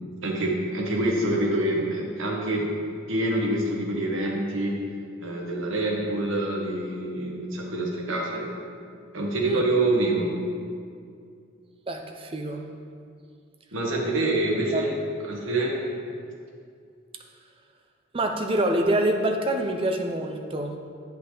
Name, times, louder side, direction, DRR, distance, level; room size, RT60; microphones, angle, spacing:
voice 1, 0.2-2.7 3.1-4.8 5.2-8.5 9.1-10.3 13.7-15.0 15.2-15.8, right 1 dB, 85° right, -1 dB, 1.3 m, -26 dB
voice 2, 11.9-12.7 14.3-14.4 14.7-15.1 18.1-20.8, right 1 dB, 25° right, 4 dB, 0.5 m, -26 dB
8.5 x 5.7 x 3.8 m, 2.3 s
head